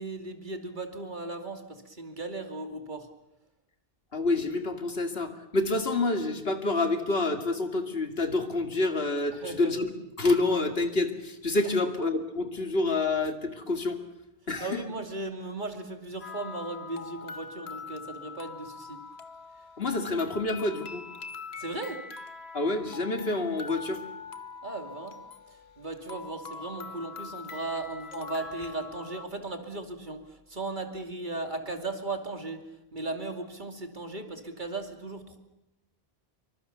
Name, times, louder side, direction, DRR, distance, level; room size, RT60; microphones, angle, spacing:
voice 1, 0.0-3.1 9.3-9.7 14.6-19.0 21.6-22.0 24.6-25.2 25.5-32.6 32.9-35.4, right 2 dB, 50° right, 5 dB, 2.8 m, -37 dB
voice 2, 4.1-9.9 10.2-14.0 14.5-14.8 19.8-21.0 22.5-24.0, left 2 dB, 75° left, 6 dB, 2.6 m, -28 dB
sound 1, 16.2-29.3, left 5 dB, 90° left, 1.6 m, -43 dB
26.5 x 24.0 x 7.0 m, 0.91 s
omnidirectional pair, 1.0 m